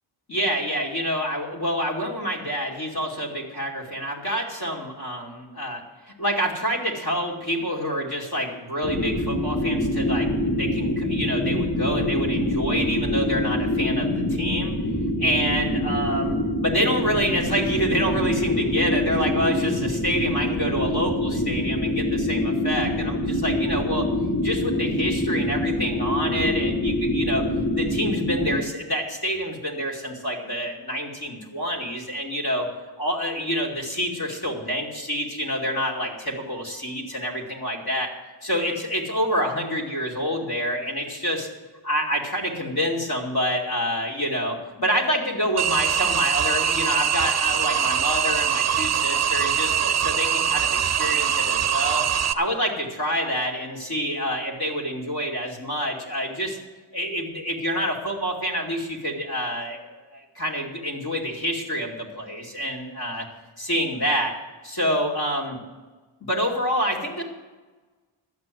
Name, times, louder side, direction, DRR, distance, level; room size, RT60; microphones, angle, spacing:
voice 1, 0.3-14.7 15.2-24.1 24.4-27.5 27.7-32.7 33.0-38.1 38.4-41.5 41.8-52.0 52.3-56.6 56.9-63.3 63.6-64.3 64.6-65.6 66.2-67.2, equal, 45° left, 0 dB, 2.8 m, -27 dB
sound 1, 8.8-28.6, left 1 dB, 10° left, 2.1 m, -25 dB
sound 2, 45.6-52.3, right 9 dB, 35° right, 0.6 m, -23 dB
12.5 x 8.9 x 7.7 m, 1.3 s
wide cardioid pair, 160°, 50 cm